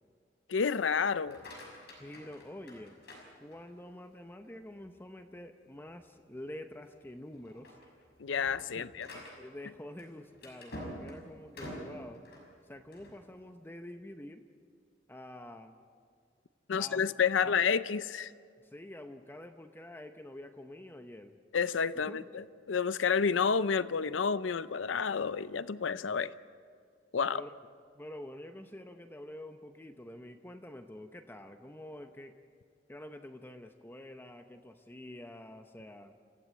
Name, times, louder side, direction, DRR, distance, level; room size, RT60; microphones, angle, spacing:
voice 1, 0.5-1.4 8.2-9.1 16.7-18.3 21.5-26.3 27.1-27.4, left 6 dB, 80° left, 16 dB, 0.6 m, -30 dB
sound 1, 1.1-3.9 4.4-4.9 5.4-5.5 5.9-6.0 6.7-7.0 7.3-13.2, equal, 60° left, 6.1 m, -48 dB
voice 2, 2.0-3.0 3.4-7.8 8.8-8.9 9.4-12.3 12.6-14.5 15.1-15.8 16.7-17.0 17.4-17.6 18.6-21.4 21.9-22.3 27.3-27.6 28.0-32.4 32.9-36.2, left 1 dB, 10° left, 7 dB, 0.8 m, -47 dB
27.0 x 16.0 x 8.3 m, 2.3 s
head